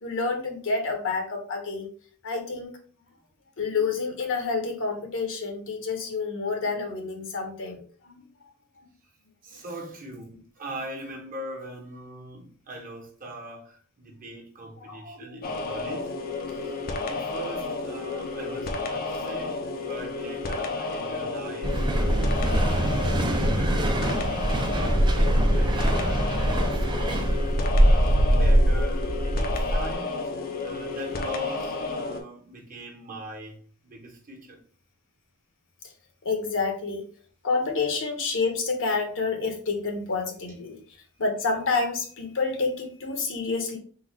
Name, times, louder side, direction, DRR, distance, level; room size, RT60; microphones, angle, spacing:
voice 1, 0.0-1.9 2.2-2.7 3.6-8.2 14.8-15.6 16.9-17.0 36.2-37.1 37.4-40.8 41.2-43.8, left 4 dB, 60° left, 1.0 m, -29 dB
voice 2, 9.4-16.1 16.5-24.0 24.5-27.3 27.8-30.3 30.6-33.6 33.8-34.6, right 1 dB, 40° right, 1.2 m, -41 dB
sound 1, 15.4-32.2, left 3 dB, 40° left, 0.6 m, -32 dB
sound 2, 21.6-29.9, right 1 dB, 20° right, 0.6 m, -23 dB
3.8 x 2.4 x 4.4 m
head